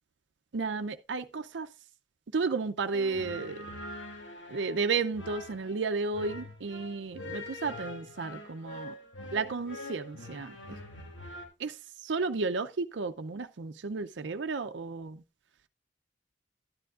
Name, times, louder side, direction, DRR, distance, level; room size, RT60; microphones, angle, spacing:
voice 1, 0.5-1.7 2.3-3.6 4.5-8.9 9.3-10.5 11.6-11.7 12.0-15.2, right 4 dB, 75° right, 0.5 m, -32 dB
sound 1, 2.9-11.4, left 2 dB, 85° left, 2.5 m, -44 dB
11.5 x 10.0 x 2.4 m
head